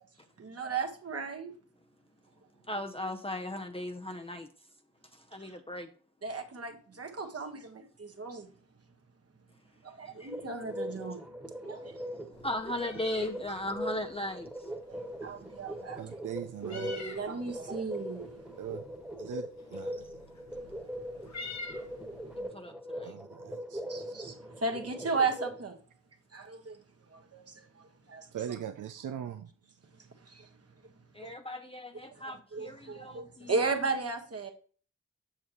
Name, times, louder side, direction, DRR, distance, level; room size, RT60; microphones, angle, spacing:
voice 1, 0.4-1.5 6.2-8.5 9.8-11.3 11.6-12.0 14.9-16.0 16.6-18.4 20.5-21.0 21.9-22.1 23.9-25.8 26.3-26.8 27.1-28.3 30.2-30.5 31.2-31.3 32.1-34.5, right 4 dB, 50° right, 1.3 m, -36 dB
voice 2, 2.7-4.5 5.1-5.9 10.2-10.3 12.0-14.7 22.4-23.1 31.1-33.6, left 1 dB, 20° left, 0.6 m, -37 dB
sound 1, 10.3-25.6, equal, 5° right, 1.4 m, -41 dB
Meow, 12.3-22.4, left 3 dB, 65° left, 1.2 m, -49 dB
voice 3, 16.0-16.9 18.6-18.8 19.2-20.3 23.0-24.1 28.3-29.5, right 9 dB, 85° right, 0.5 m, -41 dB
7.4 x 6.5 x 3.0 m
cardioid pair, 50°, 30 cm